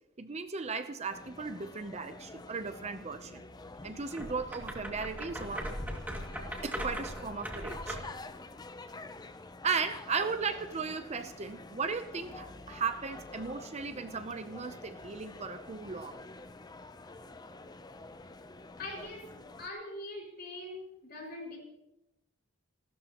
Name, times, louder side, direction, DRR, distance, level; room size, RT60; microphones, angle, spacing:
voice 1, 0.2-3.4 3.8-5.7 6.6-8.0 9.6-16.2, right 5 dB, 30° right, 9 dB, 0.6 m, -36 dB
sound 1, 1.1-19.7, left 2 dB, 20° left, 0.6 m, -48 dB
Wood Ratling, 4.1-8.2, equal, 10° right, 2.2 m, -39 dB
voice 2, 18.8-19.3 19.6-21.6, left 2 dB, 45° left, -1 dB, 5.6 m, -42 dB
29.5 x 12.5 x 3.0 m, 0.90 s
head